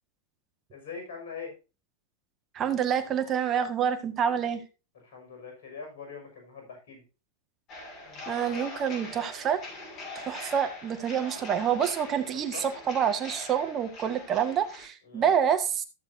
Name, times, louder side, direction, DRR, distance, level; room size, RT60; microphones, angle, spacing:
voice 1, 0.7-1.6 4.9-7.0 8.1-8.2 12.5-12.7 15.0-15.3, left 5 dB, 70° left, 2 dB, 5.8 m, -42 dB
voice 2, 2.5-4.6 8.3-9.6 10.1-15.8, right 8 dB, 35° right, 8 dB, 1.7 m, -27 dB
sound 1, 7.7-14.9, left 2 dB, 40° left, 6.3 m, -42 dB
14.5 x 7.2 x 2.7 m, 0.30 s
hypercardioid pair, 105°, 0 cm